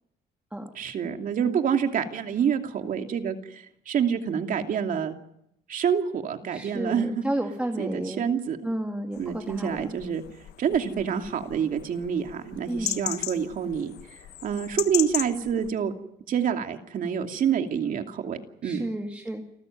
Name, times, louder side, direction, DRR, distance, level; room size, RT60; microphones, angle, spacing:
voice 1, 0.7-5.2 5.7-7.2 7.8-8.6 9.2-10.2 10.6-15.9 16.3-18.9, right 7 dB, 55° right, 5 dB, 2.7 m, -27 dB
voice 2, 6.5-8.3 8.6-9.9 12.7-13.0 18.6-19.4, right 1 dB, 5° right, 2 dB, 2.2 m, -32 dB
sound 1, 9.1-15.7, left 13 dB, 75° left, 1.4 m, -36 dB
29.5 x 13.5 x 9.4 m, 0.79 s
cardioid pair, 110°, 17 cm